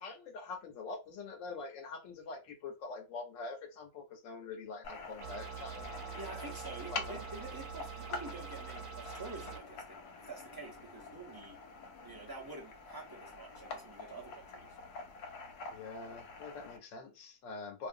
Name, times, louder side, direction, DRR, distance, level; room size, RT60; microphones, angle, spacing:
voice 1, 0.0-5.9 6.9-7.2 15.7-17.9, left 3 dB, 60° left, 1.0 m, -45 dB
sound 1, 4.8-16.8, left 4 dB, 90° left, 1.1 m, -47 dB
sound 2, 5.2-9.6, right 7 dB, 75° right, 1.1 m, -45 dB
voice 2, 6.1-11.6 12.0-14.7, right 2 dB, 35° right, 0.3 m, -48 dB
2.5 x 2.4 x 2.5 m
omnidirectional pair, 1.6 m